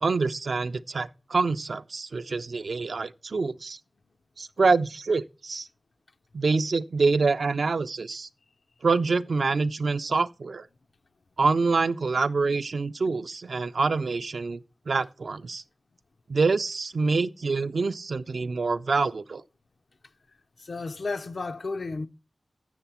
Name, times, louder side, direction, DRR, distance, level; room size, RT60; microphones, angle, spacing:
voice 1, 0.0-3.8 4.4-5.7 6.3-8.3 8.8-10.7 11.4-14.6 14.9-15.6 16.3-19.4, right 4 dB, 75° right, 0.4 m, -26 dB
voice 2, 20.6-22.1, left 3 dB, 70° left, 0.6 m, -32 dB
8.0 x 6.7 x 5.8 m
wide cardioid pair, 65°, 0 cm